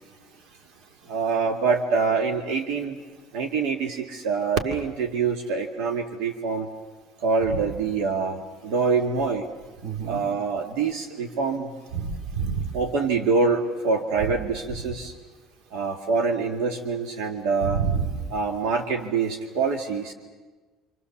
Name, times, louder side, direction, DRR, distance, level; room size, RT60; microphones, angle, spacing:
voice 1, 1.1-3.0 3.3-6.7 7.2-9.5 10.1-11.7 12.7-15.1 15.7-17.8 18.3-20.1, right 4 dB, 80° right, 2 dB, 2.1 m, -25 dB
voice 2, 9.8-10.2 11.9-12.7 14.9-15.0 17.6-18.2, right 5 dB, 65° right, 5 dB, 2.5 m, -28 dB
27.5 x 27.0 x 7.2 m, 1.4 s
cardioid pair, 140°, 0 cm